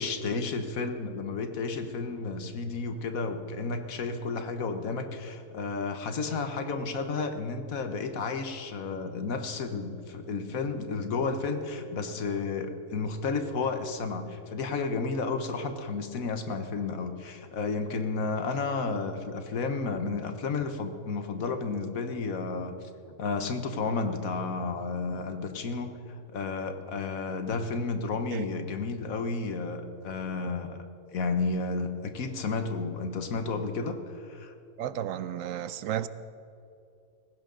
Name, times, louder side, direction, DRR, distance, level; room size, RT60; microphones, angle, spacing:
voice 1, 0.0-22.7 23.2-30.8 31.1-34.0 34.2-34.5, left 4 dB, 80° left, 1.5 m, -32 dB
voice 2, 34.8-36.1, right 11 dB, 75° right, 0.9 m, -33 dB
18.0 x 16.0 x 3.9 m
omnidirectional pair, 1.4 m